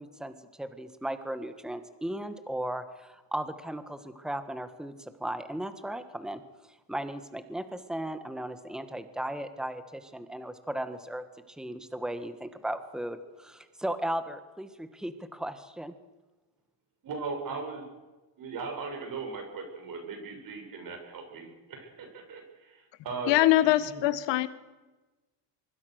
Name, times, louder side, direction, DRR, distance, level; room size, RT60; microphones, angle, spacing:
voice 1, 0.0-15.9, right 1 dB, ahead, 10 dB, 1.7 m, -36 dB
voice 2, 17.0-17.9 18.4-23.3 23.6-24.0, right 4 dB, 45° right, 3 dB, 7.5 m, -38 dB
voice 3, 23.3-24.5, left 15 dB, 65° left, 13 dB, 1.8 m, -23 dB
24.5 x 23.5 x 6.6 m, 1.2 s
cardioid pair, 125°, 46 cm